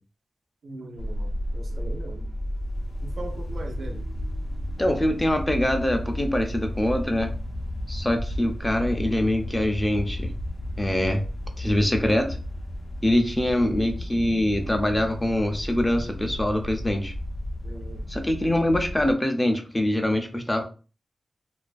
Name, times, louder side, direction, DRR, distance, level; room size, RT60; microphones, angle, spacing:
voice 1, 0.6-2.4 3.0-4.1 17.6-18.1, right 2 dB, 70° right, 0.5 m, -40 dB
sound 1, 1.0-19.1, equal, 85° left, 0.5 m, -33 dB
voice 2, 4.8-7.3 7.9-10.3 10.8-11.2 11.6-12.4 13.0-17.1 18.1-20.6, left 1 dB, 10° left, 0.4 m, -24 dB
2.3 x 2.3 x 2.4 m
wide cardioid pair, 125°, 0 cm